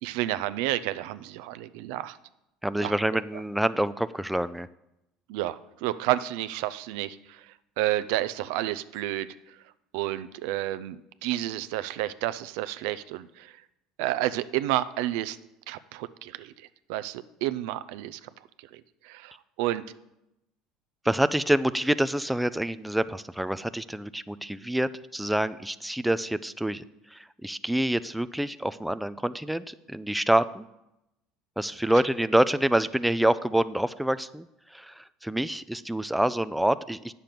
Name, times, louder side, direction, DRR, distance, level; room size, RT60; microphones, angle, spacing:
voice 1, 0.0-2.2 2.8-2.9 5.3-7.5 7.8-9.3 9.9-13.5 14.0-15.4 15.7-16.5 16.9-18.2 18.7-19.8, right 14 dB, 75° right, 14 dB, 0.4 m, -30 dB
voice 2, 2.6-4.7 21.0-26.8 27.1-30.7 31.6-34.4 34.7-37.1, right 1 dB, 5° right, 14 dB, 0.4 m, -26 dB
8.9 x 6.8 x 5.8 m, 0.87 s
supercardioid pair, 85°, 0 cm